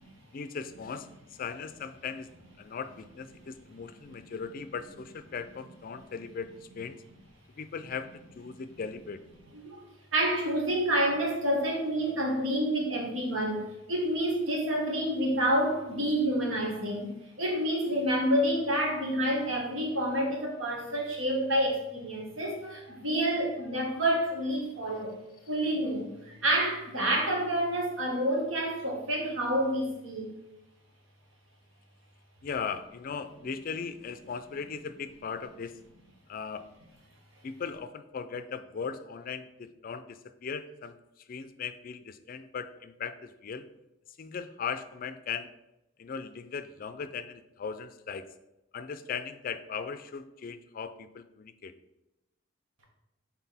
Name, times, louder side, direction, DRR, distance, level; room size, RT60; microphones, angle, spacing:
voice 1, 0.3-1.1 1.4-2.3 2.6-7.0 7.6-9.2 32.4-35.8 36.3-36.7 37.4-41.0 41.3-43.6 44.2-45.5 46.0-48.3 48.7-51.7, left 6 dB, 45° left, 11 dB, 0.4 m, -38 dB
voice 2, 10.1-25.2 25.5-30.3, right 1 dB, 90° right, -1 dB, 1.5 m, -28 dB
5.9 x 4.1 x 4.1 m, 0.94 s
head